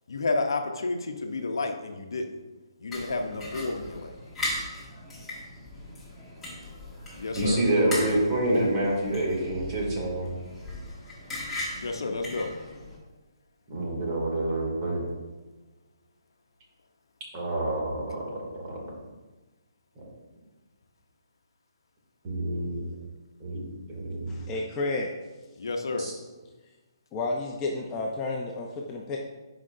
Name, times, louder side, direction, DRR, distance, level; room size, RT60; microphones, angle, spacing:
voice 1, 0.1-2.3 2.8-4.2 7.2-7.6 11.7-12.5 25.6-26.1, left 3 dB, 70° left, 4 dB, 0.9 m, -30 dB
sound 1, 2.9-13.0, left 1 dB, 5° left, 1.9 m, -38 dB
voice 2, 7.3-10.3 13.7-15.0 17.3-18.2 18.5-18.8 22.2-22.8 23.4-23.6 23.9-24.4 26.0-26.1, right 1 dB, 30° right, -3 dB, 2.5 m, -27 dB
voice 3, 24.3-25.1 27.1-29.2, left 3 dB, 20° left, -1 dB, 0.7 m, -31 dB
11.0 x 5.1 x 2.7 m, 1.2 s
figure-of-eight pair, 145°, 2 cm